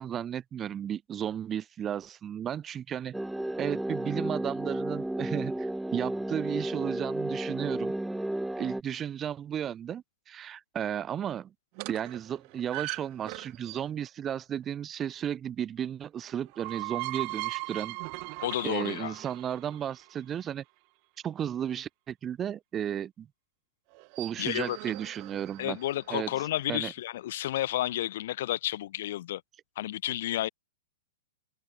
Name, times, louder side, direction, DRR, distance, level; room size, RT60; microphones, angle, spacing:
voice 1, 0.0-3.2 3.6-7.9 8.6-11.5 11.9-18.0 18.6-20.6 21.2-23.3 24.2-25.8 26.1-26.4 26.7-26.9, right 9 dB, 25° right, 1.8 m, -34 dB
sound 1, 3.1-8.8, right 1 dB, 5° right, 0.4 m, -33 dB
sound 2, 11.7-14.1 16.3-20.3 23.9-26.2, right 40 dB or more, 45° right, 0.8 m, -39 dB
voice 2, 18.4-19.1 24.4-24.8 25.6-29.4 29.8-30.5, left 14 dB, 60° left, 2.9 m, -31 dB
open air
hypercardioid pair, 125°, 0 cm